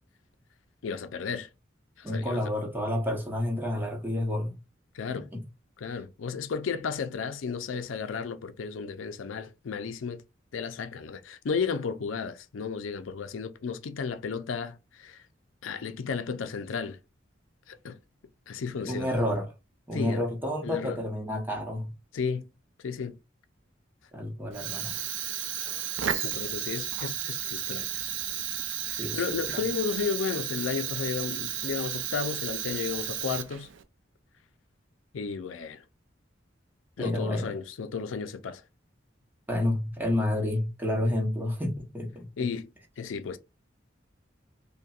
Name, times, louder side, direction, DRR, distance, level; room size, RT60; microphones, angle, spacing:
voice 1, 0.8-1.5 2.0-2.5 4.9-5.3 5.8-10.2 10.5-15.2 15.6-17.0 17.7-18.0 18.5-19.1 19.9-20.3 20.6-21.0 22.1-22.5 22.8-23.2 26.2-27.9 28.9-33.7 35.1-35.8 37.0-38.6 42.4-42.7 43.0-43.4, left 5 dB, 85° left, 0.5 m, -33 dB
voice 2, 2.0-4.6 5.1-5.4 18.9-19.5 19.9-21.9 24.1-25.0 28.9-29.6 37.0-37.5 39.5-42.5, left 1 dB, 10° right, 0.9 m, -30 dB
Fire, 24.5-33.8, right 10 dB, 75° right, 0.5 m, -33 dB
5.4 x 2.2 x 2.4 m
head